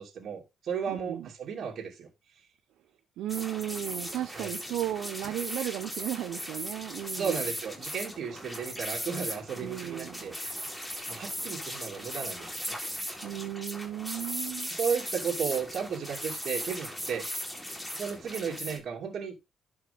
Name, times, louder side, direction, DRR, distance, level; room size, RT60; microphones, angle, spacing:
voice 1, 0.0-2.1 4.3-4.5 7.2-10.4 11.1-12.7 14.7-17.3 17.9-19.5, right 6 dB, 65° right, 2.7 m, -34 dB
voice 2, 0.9-1.3 3.2-7.4 9.5-10.3 13.2-14.7, right 12 dB, 85° right, 0.9 m, -35 dB
sound 1, 3.3-18.8, equal, 10° left, 3.8 m, -38 dB
11.5 x 5.6 x 3.6 m
cardioid pair, 90°, 0 cm